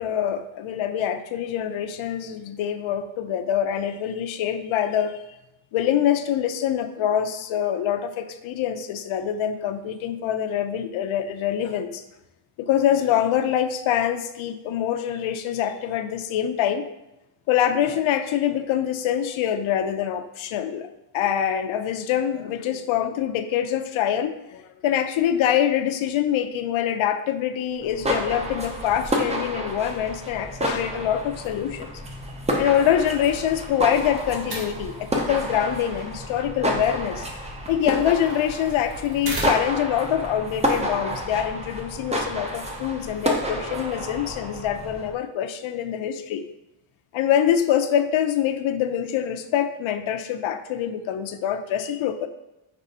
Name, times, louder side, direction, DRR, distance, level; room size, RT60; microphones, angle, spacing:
voice 1, 0.0-5.2 5.7-12.0 12.6-16.8 17.5-31.9 32.6-37.3 37.7-46.5 47.1-52.3, left 10 dB, 80° left, 8 dB, 0.5 m, -25 dB
sound 1, 27.8-45.1, equal, 15° right, 0.4 m, -30 dB
sound 2, 33.0-39.9, right 2 dB, 55° right, 1.0 m, -39 dB
5.4 x 3.3 x 2.7 m, 0.95 s
wide cardioid pair, 170°, 47 cm